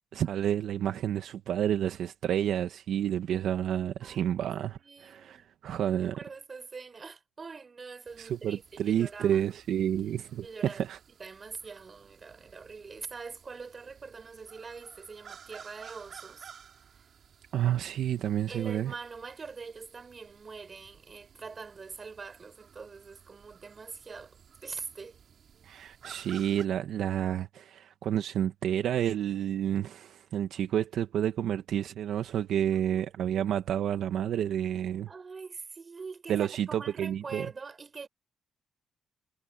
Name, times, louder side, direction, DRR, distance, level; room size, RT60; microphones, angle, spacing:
voice 1, 0.1-6.2 8.2-11.0 17.5-18.9 25.6-35.1 36.3-37.5, right 10 dB, 75° right, 1.1 m, -30 dB
voice 2, 4.0-4.5 4.8-5.5 6.0-9.4 10.4-10.8 11.2-16.5 16.9-17.1 18.5-25.2 32.7-33.1 35.1-38.1, right 4 dB, 35° right, 5.0 m, -44 dB
sound 1, 8.1-26.7, right 7 dB, 55° right, 3.9 m, -55 dB
cardioid pair, 90°, 0 cm